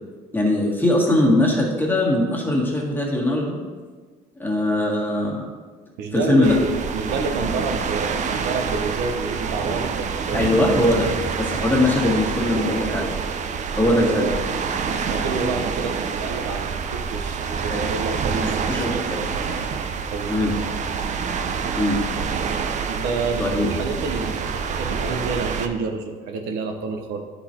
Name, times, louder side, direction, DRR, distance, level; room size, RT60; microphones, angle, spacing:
voice 1, 0.3-3.6 4.4-5.4 6.1-6.6 10.3-11.1 11.4-13.1 13.8-14.3 17.6-17.8 18.4-19.2 20.3-20.5 21.8-22.0 23.4-23.7, left 1 dB, 10° left, -2 dB, 1.7 m, -21 dB
voice 2, 6.0-10.4 13.9-14.5 14.8-19.7 20.1-20.5 22.9-27.2, right 4 dB, 90° right, 5 dB, 0.9 m, -29 dB
sound 1, 6.4-25.7, right 6 dB, 45° right, 0.6 m, -27 dB
9.8 x 4.1 x 4.4 m, 1.5 s
cardioid pair, 110°, 17 cm